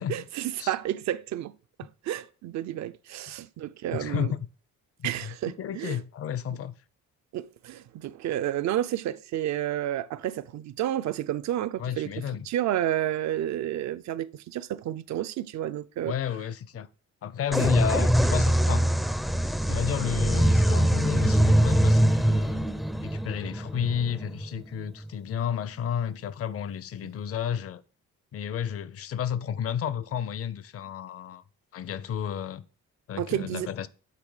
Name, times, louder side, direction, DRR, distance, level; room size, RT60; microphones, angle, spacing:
voice 1, 0.1-1.5 1.8-4.3 5.0-6.0 7.3-16.1 33.2-33.7, right 12 dB, 65° right, 0.5 m, -31 dB
voice 2, 3.9-4.5 5.0-6.7 11.8-12.5 16.0-16.9 17.2-18.9 19.7-22.7 23.0-27.8 28.3-31.4 31.7-32.6 33.1-33.9, left 9 dB, 50° left, 0.6 m, -32 dB
sound 1, 17.5-25.1, right 1 dB, ahead, 0.4 m, -23 dB
8.3 x 3.3 x 4.9 m
cardioid pair, 90°, 30 cm